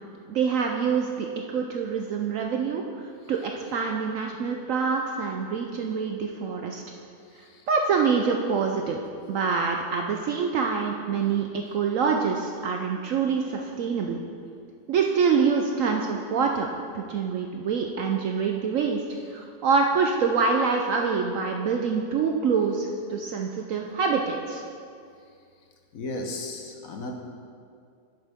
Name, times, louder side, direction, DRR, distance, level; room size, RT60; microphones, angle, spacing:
voice 1, 0.3-2.8 3.3-6.8 7.7-9.0 9.3-14.2 14.9-16.7 16.9-19.0 19.3-24.6, right 5 dB, 65° right, 2 dB, 0.8 m, -25 dB
voice 2, 25.9-27.1, left 2 dB, 60° left, 2 dB, 1.1 m, -34 dB
10.5 x 8.0 x 3.5 m, 2.3 s
omnidirectional pair, 1.8 m